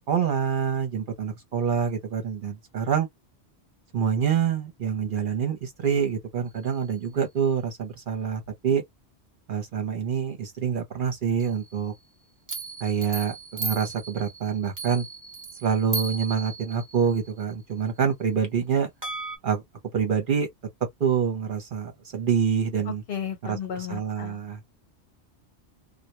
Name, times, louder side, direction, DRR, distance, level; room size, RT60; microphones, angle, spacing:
voice 1, 0.1-3.1 3.9-8.8 9.5-11.9 12.8-15.1 15.6-18.9 19.4-19.6 19.9-20.5 21.0-23.0 23.4-24.6, right 7 dB, 55° right, 0.8 m, -26 dB
sound 1, 6.6-6.8 11.4-12.0 12.5-17.5 19.0-19.4, right 3 dB, 20° right, 0.6 m, -36 dB
voice 2, 23.1-24.4, left 8 dB, 60° left, 1.0 m, -34 dB
2.2 x 2.2 x 2.8 m
omnidirectional pair, 1.1 m